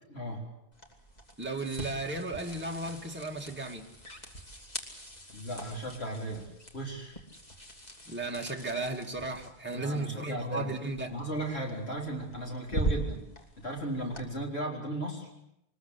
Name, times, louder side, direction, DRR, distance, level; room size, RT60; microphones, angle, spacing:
voice 1, 0.1-0.4 5.3-7.2 9.7-10.7 11.1-13.3 13.6-15.3, right 1 dB, 70° left, 0 dB, 4.3 m, -36 dB
sound 1, 0.7-14.3, right 1 dB, 40° left, 3.0 m, -41 dB
voice 2, 1.4-3.8 8.1-11.1, right 2 dB, 10° right, 1 dB, 2.0 m, -35 dB
24.0 x 20.5 x 8.3 m, 0.79 s
omnidirectional pair, 1.1 m